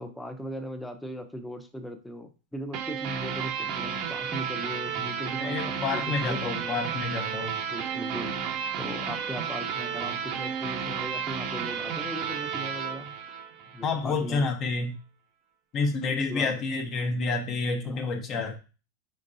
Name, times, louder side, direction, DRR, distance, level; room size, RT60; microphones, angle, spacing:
voice 1, 0.0-6.8 7.7-8.3 8.8-13.1 13.7-14.5 16.3-16.5 17.8-18.1, equal, 5° left, 7 dB, 0.7 m, -38 dB
sound 1, 2.7-14.0, right 7 dB, 50° right, 0.6 m, -32 dB
voice 2, 5.4-7.6 13.8-15.0 15.7-18.6, left 4 dB, 35° left, 4 dB, 0.8 m, -29 dB
4.5 x 4.0 x 2.6 m, 0.33 s
hypercardioid pair, 120°, 0 cm